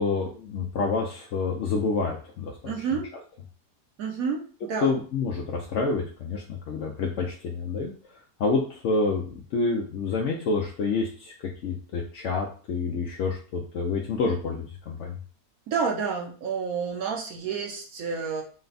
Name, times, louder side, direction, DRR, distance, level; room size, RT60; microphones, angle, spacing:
voice 1, 0.0-2.8 4.8-15.2, left 4 dB, 70° left, 0 dB, 0.7 m, -28 dB
voice 2, 2.7-3.1 4.0-4.9 15.7-18.4, right 5 dB, 65° right, 0 dB, 1.1 m, -29 dB
4.2 x 2.2 x 3.9 m, 0.40 s
omnidirectional pair, 1.8 m